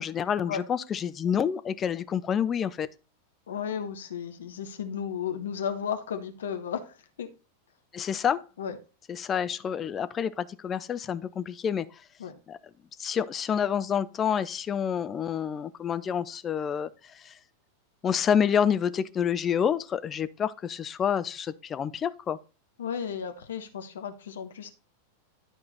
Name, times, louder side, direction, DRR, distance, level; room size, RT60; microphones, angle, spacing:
voice 1, 0.0-2.9 7.9-8.4 9.1-11.9 12.5-12.6 13.0-16.9 17.2-17.3 18.0-22.4, left 8 dB, 25° left, 0.6 m, -28 dB
voice 2, 3.5-7.3 8.6-8.8 12.2-12.4 22.8-24.7, left 7 dB, 65° left, 1.2 m, -34 dB
11.5 x 4.8 x 4.0 m
figure-of-eight pair, 90°, 0 cm